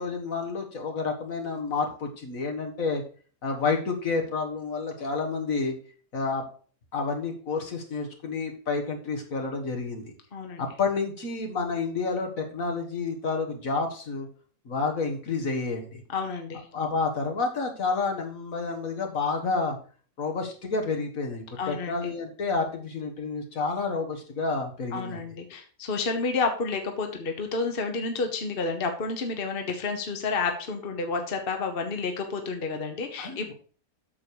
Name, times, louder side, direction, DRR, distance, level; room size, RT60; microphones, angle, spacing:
voice 1, 0.0-3.0 3.4-5.7 6.1-6.4 6.9-10.1 10.6-14.3 14.7-16.0 16.7-19.8 20.2-25.2 33.2-33.5, left 4 dB, 65° left, 3 dB, 2.1 m, -29 dB
voice 2, 10.3-10.6 16.1-16.6 21.6-22.1 24.9-33.5, left 4 dB, 40° left, 5 dB, 1.3 m, -30 dB
8.6 x 6.7 x 4.7 m, 0.41 s
omnidirectional pair, 1.5 m